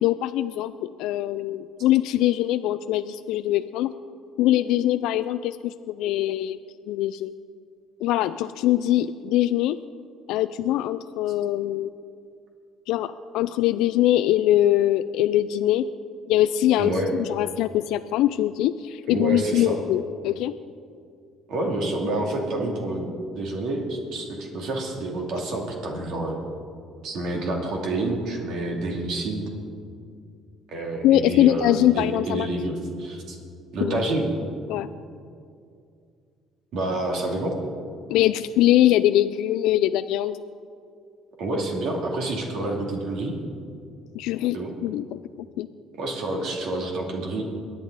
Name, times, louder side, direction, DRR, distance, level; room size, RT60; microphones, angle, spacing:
voice 1, 0.0-3.9 4.4-6.6 6.9-7.3 8.0-9.8 10.3-11.9 12.9-15.9 16.3-20.5 31.0-32.5 33.8-34.0 34.7-34.9 38.1-40.4 44.1-44.6 44.8-45.0 45.6-45.7, left 13 dB, 80° left, 11 dB, 0.3 m, -22 dB
voice 2, 16.8-17.1 19.1-19.8 21.5-23.1 23.3-26.4 27.0-29.4 30.7-33.4 33.7-34.3 36.7-37.6 41.4-43.3 44.5-44.7 45.9-47.4, right 2 dB, 70° right, 0 dB, 2.6 m, -28 dB
22.5 x 9.0 x 4.0 m, 2.4 s
cardioid pair, 95°, 0 cm